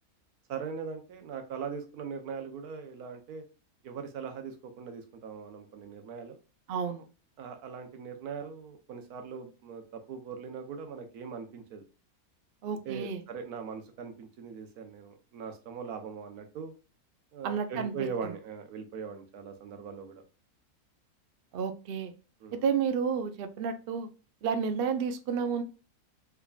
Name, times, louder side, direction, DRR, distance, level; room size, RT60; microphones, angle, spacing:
voice 1, 0.5-3.4 3.8-6.4 7.4-11.8 12.7-16.7 17.3-20.2 22.4-22.6, right 6 dB, 85° right, 6 dB, 1.3 m, -40 dB
voice 2, 6.7-7.0 12.6-13.2 17.4-17.9 21.5-22.1 22.5-24.1 24.4-25.6, right 6 dB, 65° right, 8 dB, 0.5 m, -31 dB
3.6 x 3.4 x 2.3 m, 0.35 s
omnidirectional pair, 1.6 m